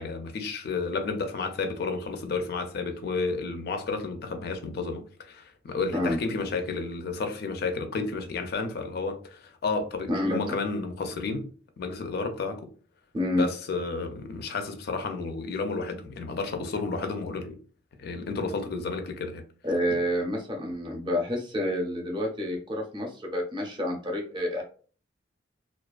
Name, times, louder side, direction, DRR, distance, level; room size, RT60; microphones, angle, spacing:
voice 1, 0.0-11.5 11.8-12.6 13.3-17.6 18.0-19.4, left 4 dB, 55° left, 0.4 m, -31 dB
voice 2, 10.1-10.4 13.1-13.5 19.6-24.6, left 1 dB, 25° right, 0.6 m, -28 dB
2.3 x 2.3 x 2.3 m
head